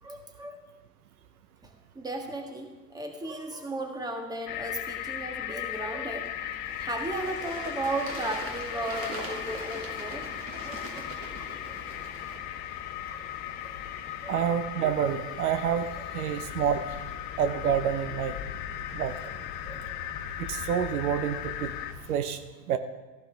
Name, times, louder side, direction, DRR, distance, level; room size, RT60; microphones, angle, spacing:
voice 1, 0.0-0.6 1.6-6.3 6.8-10.3 10.6-11.1 11.7-11.8 13.1-13.2 13.7-13.8 14.2-14.3 16.3-16.4 19.6-19.9, right 2 dB, 10° right, 3 dB, 1.5 m, -35 dB
sound 1, 4.5-21.9, left 11 dB, 20° left, 0.4 m, -38 dB
Bird / Water, 5.7-12.4, right 2 dB, 30° right, 2.1 m, -42 dB
sound 2, 6.7-22.2, left 6 dB, 45° left, 1.7 m, -45 dB
voice 2, 14.3-17.0 17.4-18.3 18.9-19.1 20.4-21.7 22.1-22.4 22.7-22.8, right 8 dB, 65° right, 11 dB, 0.8 m, -28 dB
14.5 x 11.0 x 3.4 m, 1.3 s
hypercardioid pair, 110°, 48 cm